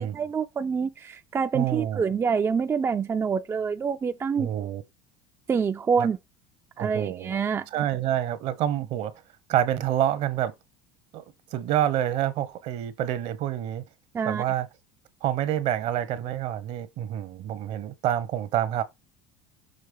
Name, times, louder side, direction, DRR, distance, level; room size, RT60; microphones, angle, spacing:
voice 1, 0.0-4.7 5.5-6.2 6.8-7.7 14.1-14.4, right 6 dB, 20° right, 0.4 m, -26 dB
voice 2, 1.5-2.0 4.4-4.8 6.0-6.1 6.8-7.4 7.7-9.1 9.5-10.5 11.1-11.2 11.5-13.8 14.2-14.7 15.2-18.8, right 11 dB, 60° right, 1.0 m, -27 dB
6.7 x 3.1 x 5.4 m
supercardioid pair, 95°, 12 cm